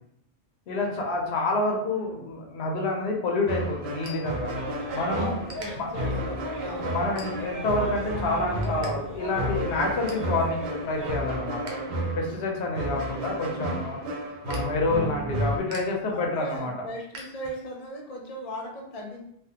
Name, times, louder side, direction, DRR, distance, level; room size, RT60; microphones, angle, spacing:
voice 1, 0.7-4.5 4.9-5.4 5.8-5.9 6.9-11.8 12.2-14.0 14.4-16.9, left 2 dB, 85° left, 0 dB, 0.9 m, -28 dB
sound 1, 3.0-5.0 5.2-5.7 6.3-6.5 7.0-7.7 8.1-8.9 9.2-9.3 9.7-10.3 10.8-11.7 12.1-17.9, right 1 dB, 55° right, 0.6 m, -47 dB
sound 2, 3.5-15.6, right 1 dB, 85° right, 0.9 m, -32 dB
sound 3, 4.5-11.1, right 1 dB, 25° right, 0.8 m, -38 dB
voice 2, 5.1-6.9 16.1-19.2, equal, 45° left, -1 dB, 0.6 m, -38 dB
3.3 x 2.2 x 2.7 m, 0.74 s
omnidirectional pair, 1.0 m